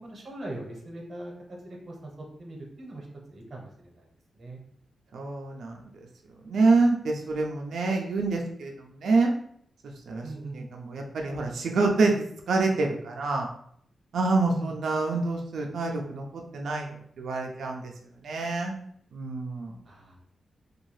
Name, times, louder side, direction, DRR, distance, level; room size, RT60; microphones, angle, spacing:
voice 1, 0.0-4.1 4.3-4.6 10.2-10.6 14.5-14.7 19.8-20.2, right 2 dB, 45° right, 0 dB, 0.8 m, -41 dB
voice 2, 5.1-5.8 6.4-9.3 10.1-10.3 10.5-13.5 14.1-17.9 18.2-18.7 19.1-19.7, right 3 dB, 80° right, 1 dB, 0.3 m, -27 dB
2.6 x 2.3 x 3.1 m, 0.67 s
wide cardioid pair, 130°, 0 cm